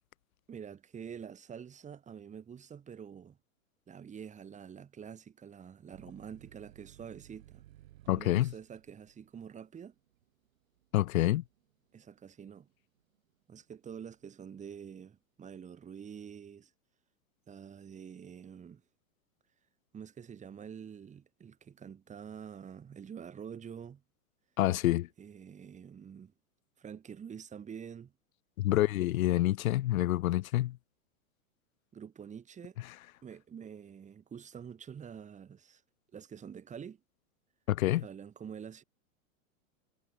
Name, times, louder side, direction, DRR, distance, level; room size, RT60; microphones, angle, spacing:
voice 1, 0.5-3.4 3.9-7.6 8.1-9.9 11.9-12.7 13.5-16.7 17.5-18.8 19.9-24.0 25.2-26.3 26.8-28.1 31.9-32.8 33.2-35.8 36.1-37.0 38.0-38.8, right 7 dB, 15° right, 8.0 m, -47 dB
sound 1, 5.9-13.2 13.6-14.3, right 13 dB, 70° right, 7.4 m, -59 dB
voice 2, 8.1-8.5 10.9-11.4 24.6-25.1 28.6-30.8 32.9-33.0 37.7-38.0, left 15 dB, 75° left, 1.0 m, -27 dB
supercardioid pair, 150°, 42 cm